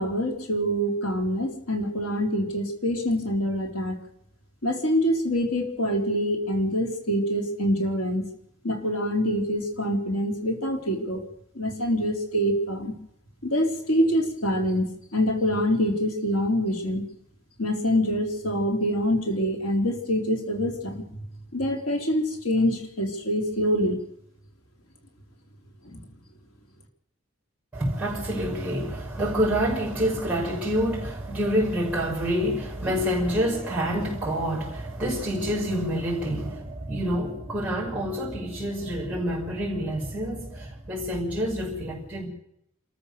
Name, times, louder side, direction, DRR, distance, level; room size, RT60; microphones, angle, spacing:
voice 1, 0.0-4.0 4.6-8.3 8.6-11.2 11.6-12.9 13.4-14.9 15.1-17.1 17.6-21.0 21.5-24.0 25.8-26.0, equal, 90° left, 4.0 m, -25 dB
voice 2, 27.7-42.3, equal, 5° right, 5.5 m, -27 dB
28.0 x 14.0 x 6.8 m
head